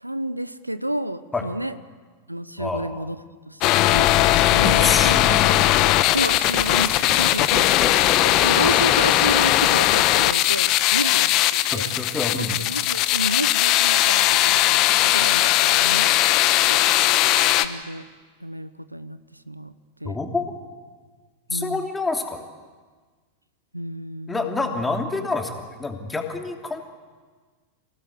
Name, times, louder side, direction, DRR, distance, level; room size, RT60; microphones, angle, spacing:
voice 1, 0.0-1.8 2.3-3.2 3.5-3.6 3.9-4.1 4.5-5.6 6.1-7.6 8.4-11.9 12.4-16.2 16.7-16.8 17.6-18.1 18.4-19.7 20.0-20.2 21.5-21.8 23.7-24.6, right 1 dB, 85° right, 15 dB, 0.8 m, -31 dB
voice 2, 2.6-3.1 4.6-5.5 7.5-8.7 11.0-11.2 11.7-12.6 20.0-20.5 21.5-22.4 24.3-26.8, left 3 dB, 10° left, 3 dB, 2.9 m, -28 dB
sound 1, 3.6-17.7, left 15 dB, 40° left, 1.1 m, -19 dB
27.5 x 17.5 x 9.5 m, 1.4 s
figure-of-eight pair, 90°, 0 cm